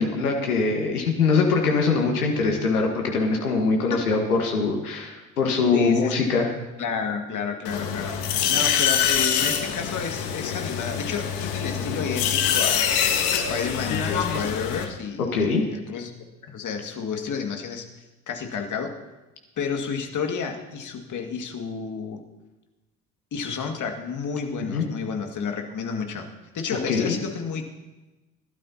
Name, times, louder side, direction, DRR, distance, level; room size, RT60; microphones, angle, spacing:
voice 1, 0.0-6.5 11.8-12.1 15.3-15.6 24.7-24.9 26.9-27.1, left 4 dB, 85° left, 2 dB, 1.6 m, -23 dB
voice 2, 5.7-6.3 6.8-12.9 13.3-16.1 16.5-17.9 18.3-18.9 19.6-22.2 23.3-26.3 26.5-27.6, left 6 dB, 45° left, 4 dB, 2.1 m, -31 dB
sound 1, 7.7-14.9, left 8 dB, 60° left, 1.6 m, -25 dB
20.5 x 12.0 x 2.9 m, 1.1 s
hypercardioid pair, 60°, 43 cm